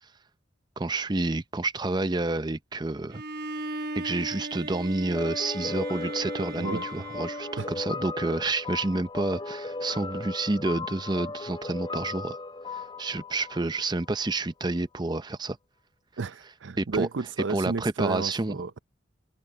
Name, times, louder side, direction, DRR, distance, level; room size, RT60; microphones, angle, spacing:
voice 1, 0.8-3.2 4.0-12.4 12.7-15.6 16.8-17.1 17.5-18.6, right 2 dB, 20° right, 0.6 m, -29 dB
Bowed string instrument, 3.1-8.1, right 2 dB, 55° right, 1.2 m, -38 dB
sound 1, 5.1-14.4, left 3 dB, 25° left, 2.6 m, -37 dB
voice 2, 6.4-6.8 7.6-7.7 16.2-18.8, right 4 dB, 75° right, 0.6 m, -32 dB
open air
head